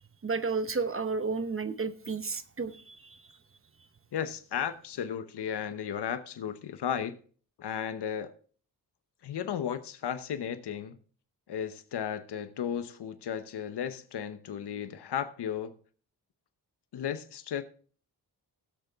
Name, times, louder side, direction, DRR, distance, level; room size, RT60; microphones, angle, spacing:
voice 1, 0.2-3.0, right 4 dB, 30° right, 0.9 m, -32 dB
voice 2, 4.1-7.2 7.6-8.3 9.2-11.0 11.5-15.8 16.9-17.6, left 8 dB, 80° left, 0.9 m, -34 dB
16.5 x 6.8 x 3.5 m
wide cardioid pair, 100°, 40 cm